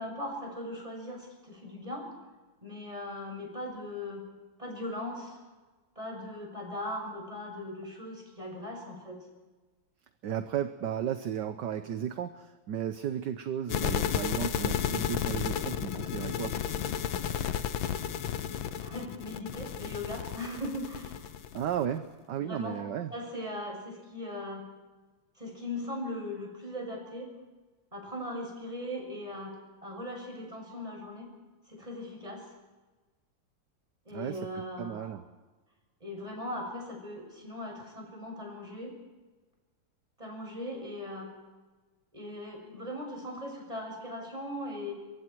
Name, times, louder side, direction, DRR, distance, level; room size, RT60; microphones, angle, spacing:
voice 1, 0.0-2.2 2.6-4.2 4.6-5.4 6.0-9.2 18.8-21.2 22.4-22.8 23.1-24.7 25.4-27.3 27.9-29.5 29.8-31.3 31.7-32.5 34.1-35.1 36.0-38.9 40.2-41.3 42.1-44.9, left 1 dB, 15° right, 1 dB, 6.8 m, -39 dB
voice 2, 10.2-16.8 21.5-23.1 34.1-35.2, right 9 dB, 60° right, 9 dB, 1.4 m, -34 dB
sound 1, 13.7-21.8, left 9 dB, 70° left, 1.6 m, -32 dB
24.0 x 23.5 x 4.7 m, 1.2 s
omnidirectional pair, 2.3 m